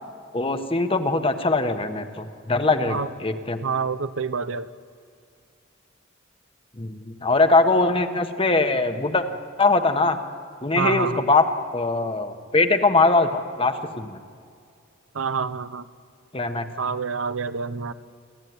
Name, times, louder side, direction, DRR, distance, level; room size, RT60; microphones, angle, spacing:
voice 1, 0.3-3.6 6.8-9.2 9.6-10.2 10.6-11.4 11.7-14.2 16.3-16.7, left 3 dB, 30° left, 7 dB, 1.3 m, -21 dB
voice 2, 3.6-4.7 10.8-11.3 15.1-15.9 16.8-17.9, right 5 dB, 75° right, 13 dB, 0.8 m, -27 dB
29.0 x 13.0 x 9.6 m, 2.3 s
head